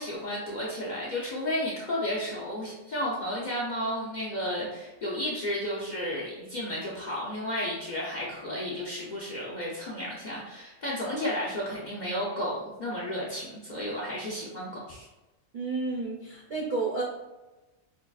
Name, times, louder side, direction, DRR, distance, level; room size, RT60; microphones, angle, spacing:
voice 1, 0.0-15.1, left 1 dB, 65° left, -5 dB, 0.4 m, -33 dB
voice 2, 15.5-17.0, right 3 dB, 65° right, -4 dB, 0.4 m, -31 dB
4.5 x 2.4 x 2.3 m, 1.1 s
omnidirectional pair, 1.5 m